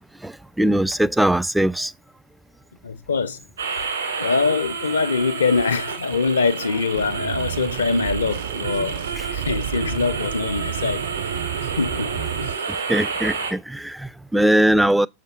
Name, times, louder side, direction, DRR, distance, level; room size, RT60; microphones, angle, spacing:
voice 1, 0.2-1.9 9.2-9.3 12.9-15.1, right 1 dB, 5° right, 0.3 m, -20 dB
voice 2, 2.8-3.4 4.2-11.1 11.6-12.1 12.4-12.7, left 4 dB, 75° left, 0.5 m, -23 dB
sound 1, 3.6-13.5, right 5 dB, 70° right, 2.5 m, -30 dB
sound 2, 6.9-12.6, right 11 dB, 55° right, 0.6 m, -31 dB
6.9 x 5.0 x 4.1 m
figure-of-eight pair, 90°, 0 cm